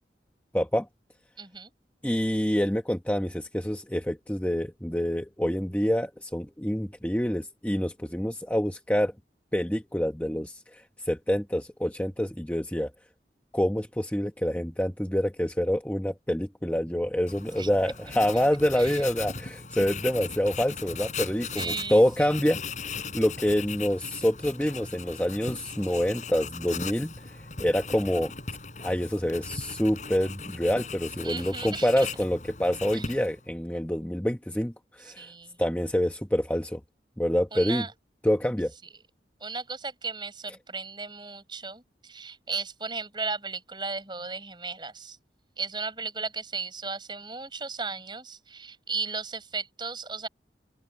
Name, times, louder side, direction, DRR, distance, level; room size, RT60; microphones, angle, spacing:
voice 1, 0.5-0.9 2.0-9.1 9.5-12.9 13.5-22.6 23.1-28.3 28.8-35.3 35.6-36.8 37.2-37.8 38.2-38.7, equal, 10° left, 1.0 m, -27 dB
voice 2, 1.4-1.7 17.6-17.9 18.7-19.1 21.6-22.4 31.2-32.1 32.9-33.1 35.0-35.6 37.5-37.9 39.4-45.2 45.6-50.3, right 4 dB, 25° right, 5.2 m, -35 dB
Writing, 17.3-33.5, left 5 dB, 45° left, 5.9 m, -38 dB
open air
head